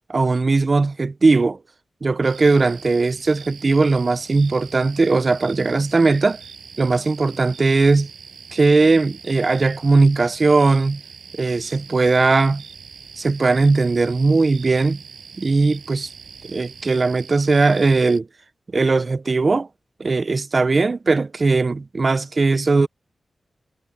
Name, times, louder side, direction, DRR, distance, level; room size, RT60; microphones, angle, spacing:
voice 1, 0.1-1.6 2.0-6.4 6.8-8.1 8.5-11.0 11.4-12.6 13.2-15.0 15.4-16.1 16.5-18.3 18.7-19.7 20.0-22.9, right 3 dB, 50° right, 1.0 m, -18 dB
sound 1, 2.2-18.2, right 6 dB, 80° right, 6.8 m, -42 dB
cardioid pair, 50°, 0 cm